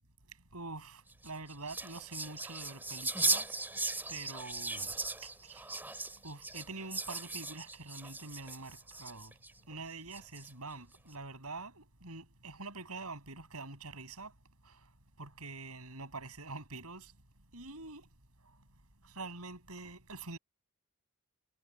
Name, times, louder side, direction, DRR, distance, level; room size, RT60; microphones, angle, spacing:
voice 1, 0.5-3.6 4.1-4.9 5.2-5.7 6.2-9.3 9.7-14.3 14.6-14.9 15.2-17.1 17.5-18.1 19.0-20.4, right 3 dB, 75° right, 6.9 m, -45 dB
sound 1, 1.1-9.5 10.1-10.7, right 2 dB, 10° right, 2.6 m, -37 dB
head